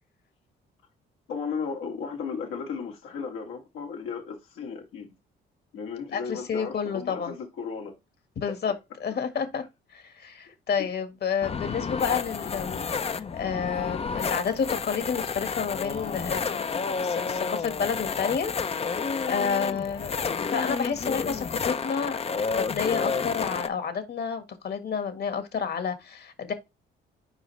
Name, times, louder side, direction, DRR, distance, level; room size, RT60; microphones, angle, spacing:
voice 1, 1.3-5.1 5.7-8.0 10.8-10.9, left 5 dB, 85° left, 2.1 m, -35 dB
voice 2, 6.1-7.3 8.4-8.7 9.0-9.6 9.9-12.8 13.1-16.8 17.0-20.1 20.5-22.2 22.5-26.5, left 6 dB, 55° left, 1.7 m, -30 dB
sound 1, 11.4-23.7, left 5 dB, 30° left, 0.6 m, -30 dB
6.2 x 5.0 x 3.2 m
cardioid pair, 90°, 20 cm